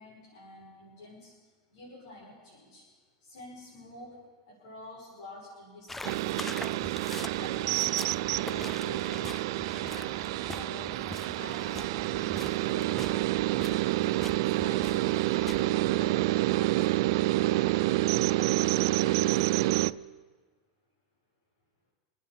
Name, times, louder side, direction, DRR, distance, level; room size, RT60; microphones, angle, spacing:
voice 1, 0.0-1.3 1.7-2.9 3.2-6.9 7.4-9.3 9.6-13.0 13.5-14.0 14.4-17.8 18.1-19.5, left 1 dB, 70° left, -7 dB, 6.9 m, -48 dB
sound 1, 5.9-16.1, left 2 dB, 10° left, 0.4 m, -44 dB
sound 2, 6.0-19.9, right 18 dB, 65° right, 0.4 m, -28 dB
28.0 x 9.4 x 5.5 m, 1.4 s
supercardioid pair, 135°, 3 cm